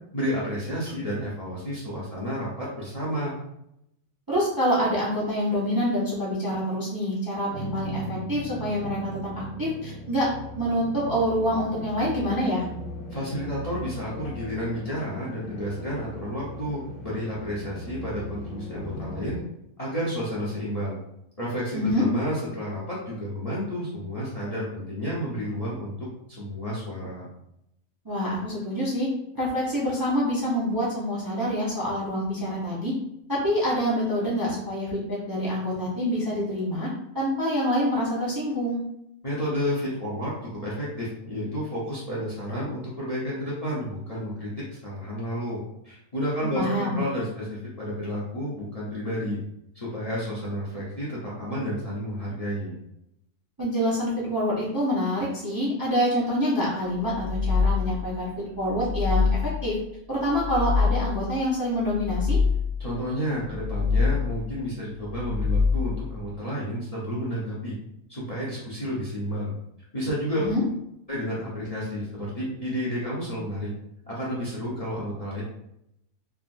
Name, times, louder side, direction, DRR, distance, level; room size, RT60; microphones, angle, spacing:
voice 1, 0.1-3.3 13.1-19.4 19.8-21.0 21.4-27.3 39.2-49.4 49.7-52.7 62.8-67.7 68.1-69.5 69.9-70.5 71.1-73.7 74.1-75.4, equal, 35° left, -7 dB, 0.7 m, -31 dB
voice 2, 4.3-10.3 10.6-12.6 21.7-22.0 28.0-29.1 29.3-32.9 33.3-36.9 37.1-38.8 46.4-47.0 53.6-58.3 58.6-59.3 59.6-59.7 60.1-62.4 70.4-70.6, equal, 25° right, -7 dB, 0.5 m, -26 dB
sound 1, 7.5-19.4, equal, 65° left, 1.0 m, -38 dB
sound 2, 57.0-58.1 58.6-59.7 60.2-61.3 61.8-62.9 63.4-64.5 65.0-66.1, left 5 dB, 55° right, 0.9 m, -25 dB
3.4 x 2.4 x 2.5 m, 0.79 s
omnidirectional pair, 1.5 m